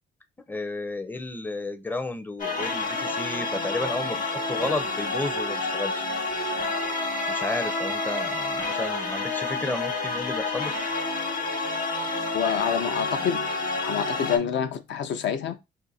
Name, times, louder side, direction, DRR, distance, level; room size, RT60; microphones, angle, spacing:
voice 1, 0.5-6.1 7.3-10.7, left 2 dB, 10° left, 0.5 m, -32 dB
sound 1, 2.4-14.4, left 3 dB, 45° left, 1.0 m, -29 dB
voice 2, 12.3-13.5 13.8-15.6, left 8 dB, 70° left, 0.5 m, -27 dB
2.5 x 2.5 x 4.0 m
cardioid pair, 90°, 20 cm